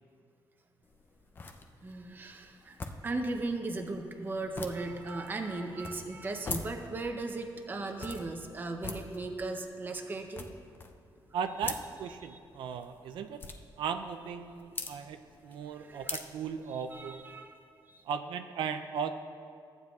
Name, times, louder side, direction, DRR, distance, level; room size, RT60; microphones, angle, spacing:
sound 1, 0.8-17.3, left 3 dB, 25° left, 0.5 m, -45 dB
voice 1, 1.8-2.8 3.0-10.5 12.3-12.4 15.7-16.1 16.9-17.6 17.9-18.1, right 2 dB, 25° right, 4 dB, 0.6 m, -37 dB
voice 2, 11.3-13.4 13.8-17.2 18.0-19.2, right 7 dB, 85° right, 7 dB, 0.4 m, -37 dB
14.5 x 9.2 x 2.3 m, 2.3 s
wide cardioid pair, 170°, 8 cm